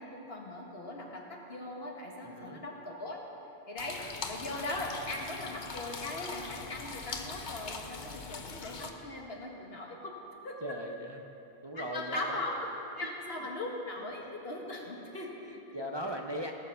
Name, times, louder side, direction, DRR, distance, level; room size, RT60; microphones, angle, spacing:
voice 1, 0.0-3.2 3.7-10.1 10.4-10.8 11.8-12.7 13.0-15.4 15.9-16.0, left 2 dB, 70° left, 0 dB, 1.8 m, -39 dB
voice 2, 2.2-2.6 8.1-8.4 8.8-8.9 9.4-9.6 10.6-11.2 11.6-12.4 13.0-13.1 15.1-16.5, equal, 30° right, 2 dB, 0.6 m, -40 dB
sound 1, 3.8-8.9, left 4 dB, 50° left, 0.9 m, -42 dB
17.5 x 7.5 x 5.7 m, 2.8 s
omnidirectional pair, 1.1 m